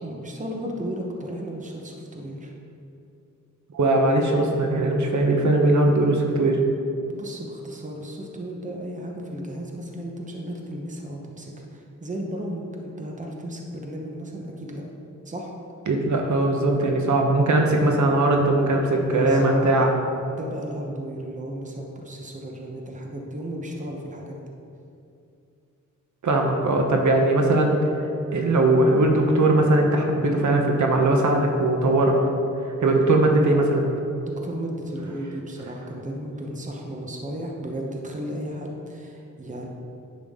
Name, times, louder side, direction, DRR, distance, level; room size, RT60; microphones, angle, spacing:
voice 1, 0.0-2.5 7.0-14.8 15.2-15.5 19.0-19.8 20.3-24.4 34.2-39.7, right 1 dB, 25° right, 0 dB, 0.8 m, -34 dB
voice 2, 3.7-6.6 15.9-19.9 26.2-27.8 28.3-32.2 32.8-33.9, right 2 dB, 65° right, 2 dB, 0.9 m, -20 dB
10.0 x 5.9 x 3.6 m, 2.7 s
wide cardioid pair, 155°, 31 cm